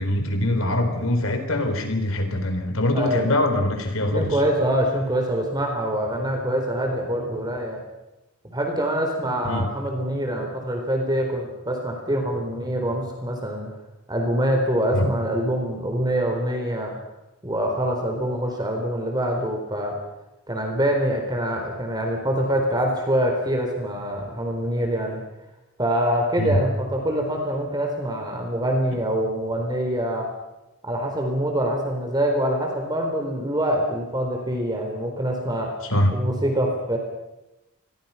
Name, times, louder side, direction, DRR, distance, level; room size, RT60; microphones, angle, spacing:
voice 1, 0.0-4.3 9.4-9.7 14.9-15.1 26.4-26.6 35.8-36.2, left 1 dB, 70° left, 6 dB, 4.2 m, -23 dB
voice 2, 2.9-3.3 4.1-7.8 8.5-13.7 14.1-16.9 17.4-20.0 20.5-25.2 25.8-30.3 30.8-35.7 36.1-37.0, equal, 20° right, 2 dB, 4.1 m, -25 dB
27.5 x 22.5 x 5.9 m, 0.99 s
head